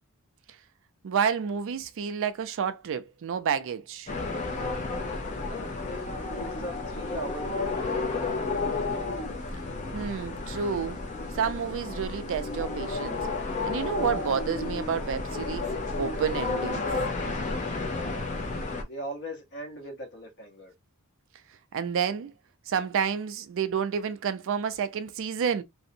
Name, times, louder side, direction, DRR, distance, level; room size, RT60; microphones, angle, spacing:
voice 1, 1.0-4.1 9.9-11.0 11.3-13.2 13.6-15.7 16.0-16.9 21.7-22.3 22.7-25.6, right 7 dB, 60° right, 0.4 m, -29 dB
sound 1, 4.1-18.8, left 3 dB, 35° left, 0.5 m, -32 dB
voice 2, 5.4-6.0 6.3-8.0 17.8-18.3 18.9-20.7, equal, 55° left, 1.0 m, -39 dB
2.5 x 2.0 x 2.6 m
head